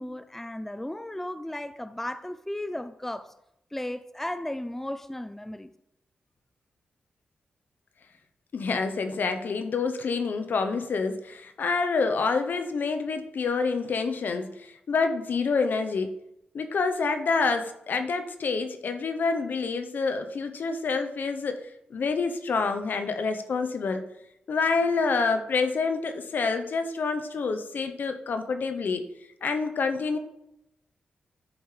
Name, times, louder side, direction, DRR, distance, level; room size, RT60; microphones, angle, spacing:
voice 1, 0.0-3.3 3.7-5.7, left 1 dB, 10° left, 0.5 m, -35 dB
voice 2, 8.5-16.1 16.5-24.0 24.5-29.0 29.4-30.2, left 4 dB, 70° left, 0.9 m, -27 dB
13.0 x 5.5 x 3.4 m
cardioid pair, 50°, 3 cm